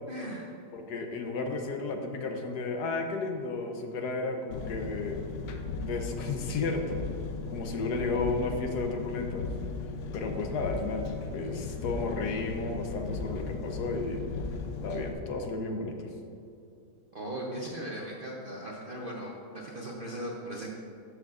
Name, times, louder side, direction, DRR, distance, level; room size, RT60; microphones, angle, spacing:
voice 1, 0.1-0.5 17.1-20.7, right 1 dB, 45° right, -3 dB, 0.7 m, -38 dB
voice 2, 0.7-5.2 5.8-7.0 7.5-9.5 10.1-14.2 14.8-16.1, left 3 dB, 70° left, 4 dB, 1.3 m, -33 dB
Engine, 4.5-15.1, left 4 dB, 90° left, 1.3 m, -37 dB
sound 1, 4.6-15.7, left 1 dB, 75° right, 1.7 m, -52 dB
13.0 x 6.1 x 2.5 m, 2.6 s
omnidirectional pair, 1.9 m